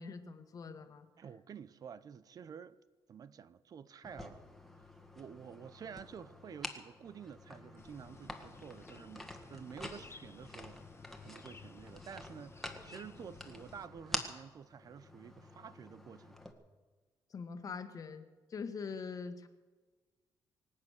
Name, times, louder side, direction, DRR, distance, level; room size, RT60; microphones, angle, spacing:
voice 1, 0.0-1.1 17.3-19.5, left 5 dB, 50° left, 1.7 m, -43 dB
voice 2, 1.2-2.8 3.1-4.5 5.2-16.4, right 7 dB, 50° right, 0.7 m, -50 dB
sound 1, 4.0-16.5, left 1 dB, ahead, 1.9 m, -47 dB
sound 2, 7.8-13.9, left 5 dB, 30° left, 0.9 m, -56 dB
25.0 x 8.4 x 6.6 m
cardioid pair, 100°, 8 cm